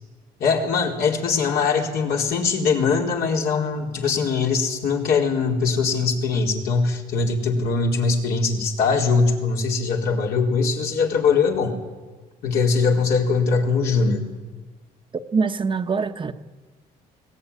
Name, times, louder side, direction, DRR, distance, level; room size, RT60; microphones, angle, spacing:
voice 1, 0.4-11.8 12.4-14.2, left 4 dB, 70° left, -1 dB, 4.4 m, -21 dB
voice 2, 15.3-16.3, right 5 dB, 30° right, 7 dB, 1.1 m, -23 dB
22.5 x 18.5 x 9.9 m, 1.4 s
cardioid pair, 110°, 17 cm